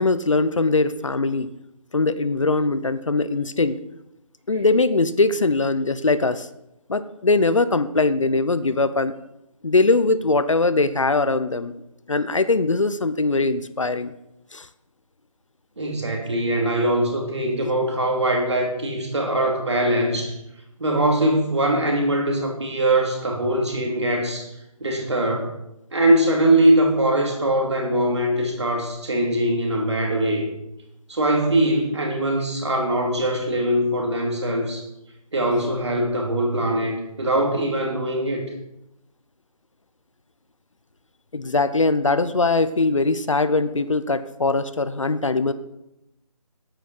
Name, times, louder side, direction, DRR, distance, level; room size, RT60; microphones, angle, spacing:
voice 1, 0.0-1.5 1.9-3.8 4.5-6.5 6.9-9.1 9.6-11.7 12.1-14.1 14.5-14.7 41.3-45.5, left 3 dB, 55° left, 13 dB, 0.7 m, -21 dB
voice 2, 15.8-20.3 20.8-24.5 24.8-25.5 25.9-30.5 31.1-34.8 35.3-38.4, right 1 dB, 45° right, 1 dB, 2.8 m, -22 dB
9.2 x 9.1 x 5.5 m, 0.88 s
figure-of-eight pair, 180°, 19 cm